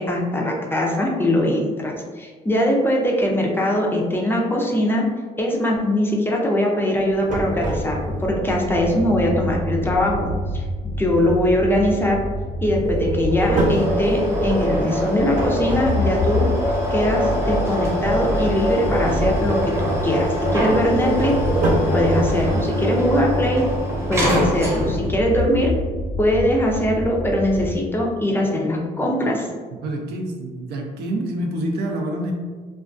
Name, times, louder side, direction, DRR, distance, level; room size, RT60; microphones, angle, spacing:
voice 1, 0.0-5.0 5.4-10.6 10.9-12.2 12.6-16.5 16.9-21.3 21.9-23.6 24.1-25.7 26.2-29.5, left 1 dB, 15° left, -1 dB, 0.4 m, -21 dB
sound 1, 7.0-8.3 12.8-16.3 20.8-22.1, right 2 dB, 50° right, 0.8 m, -25 dB
sound 2, 7.9-27.7, equal, 75° left, 0.5 m, -28 dB
sound 3, 13.4-25.2, equal, 15° right, 0.8 m, -24 dB
voice 2, 29.8-32.3, right 1 dB, 75° right, 2 dB, 0.5 m, -27 dB
2.3 x 2.2 x 2.4 m, 1.5 s
cardioid pair, 110°, 17 cm